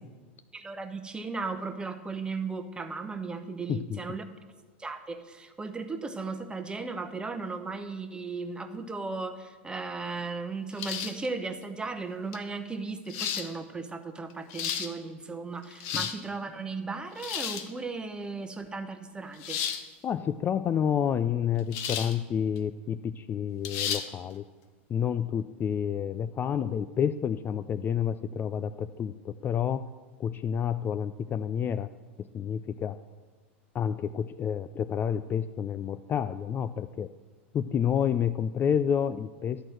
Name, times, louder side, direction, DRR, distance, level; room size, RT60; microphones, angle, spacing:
voice 1, 0.5-4.2 4.8-19.6, right 4 dB, 15° right, 8 dB, 0.9 m, -36 dB
sound 1, 10.8-11.3 12.3-12.4 13.1-13.5 14.3-14.9 15.6-16.2 17.2-17.7 19.4-19.8 21.7-22.2 22.6-22.7 23.6-24.1, left 8 dB, 55° left, 0.9 m, -32 dB
voice 2, 20.0-24.4 24.9-29.9 30.2-31.9 32.3-33.0 33.7-37.1 37.5-39.7, left 8 dB, 30° left, 11 dB, 0.3 m, -29 dB
11.5 x 4.5 x 7.8 m, 1.3 s
hypercardioid pair, 100°, 7 cm